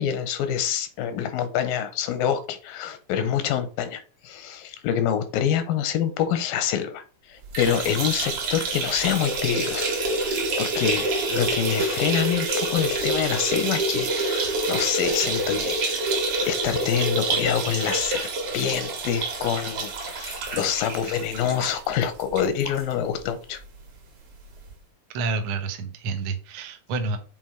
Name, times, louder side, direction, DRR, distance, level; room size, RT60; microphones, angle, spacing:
voice 1, 0.0-7.0 7.3-9.9 10.2-16.2 16.4-18.3 18.5-23.6, left 9 dB, 90° left, 2.6 m, -26 dB
sound 1, 7.4-22.8 23.2-23.3 23.6-23.7 24.7-24.8, right 2 dB, 50° right, 2.1 m, -27 dB
voice 2, 25.1-27.2, right 3 dB, 80° right, 1.2 m, -29 dB
7.6 x 3.7 x 4.6 m
omnidirectional pair, 4.0 m